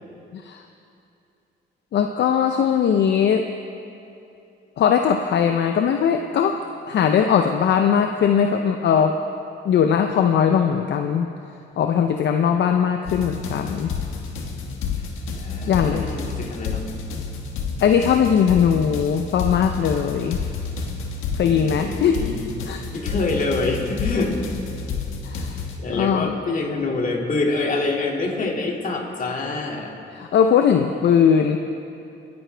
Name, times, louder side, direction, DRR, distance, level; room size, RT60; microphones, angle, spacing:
voice 1, 1.9-3.5 4.8-6.6 6.9-9.2 9.6-11.3 11.8-13.9 15.7-16.0 17.8-20.4 21.4-22.2 22.7-22.8 25.3-25.5 25.9-26.4 30.1-31.6, left 7 dB, 65° left, 5 dB, 0.6 m, -19 dB
sound 1, 13.1-25.8, left 5 dB, 90° left, 1.4 m, -30 dB
voice 2, 15.2-16.8 21.5-22.5 22.9-24.3 25.8-29.9, left 3 dB, 45° left, -1 dB, 2.4 m, -26 dB
26.0 x 9.5 x 3.4 m, 2.7 s
cardioid pair, 90°, 20 cm